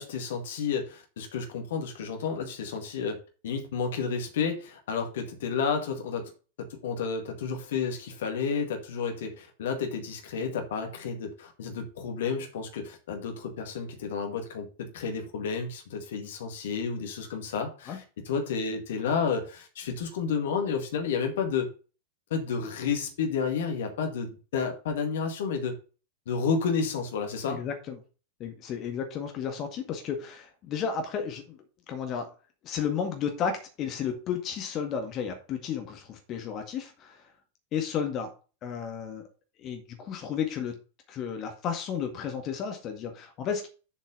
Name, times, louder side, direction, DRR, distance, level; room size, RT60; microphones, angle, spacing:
voice 1, 0.0-3.2 3.4-6.3 6.7-21.7 22.3-25.7 26.3-27.6, left 5 dB, 60° left, 4 dB, 2.0 m, -31 dB
voice 2, 27.5-28.0 28.4-32.3 32.6-37.2 37.7-38.3 38.6-39.3 39.6-40.8 41.1-43.7, left 7 dB, 35° left, 5 dB, 1.8 m, -33 dB
7.3 x 5.3 x 6.9 m, 0.35 s
figure-of-eight pair, 90°, 0 cm